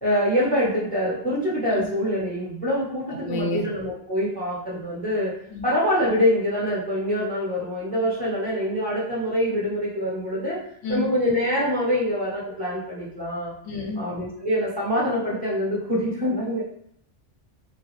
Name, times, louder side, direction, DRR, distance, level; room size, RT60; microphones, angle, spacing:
voice 1, 0.0-5.3 5.6-10.6 10.9-13.5 14.0-16.6, equal, 10° left, -6 dB, 0.8 m, -25 dB
voice 2, 3.1-3.6 5.5-5.6 10.8-11.0 13.6-14.0, left 2 dB, 75° left, 0 dB, 1.0 m, -29 dB
3.4 x 2.3 x 3.1 m, 0.69 s
omnidirectional pair, 1.3 m